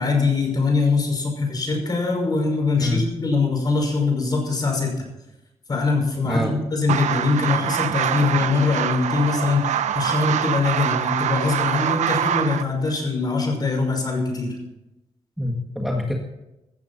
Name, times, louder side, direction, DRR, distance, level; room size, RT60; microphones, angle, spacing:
voice 1, 0.0-4.9 5.7-14.6, left 4 dB, 35° left, 2 dB, 5.7 m, -22 dB
sound 1, 6.9-12.6, right 9 dB, 90° right, 0.8 m, -24 dB
voice 2, 15.4-16.1, left 1 dB, ahead, 0 dB, 1.7 m, -24 dB
15.5 x 14.5 x 4.3 m, 0.94 s
wide cardioid pair, 135°, 12 cm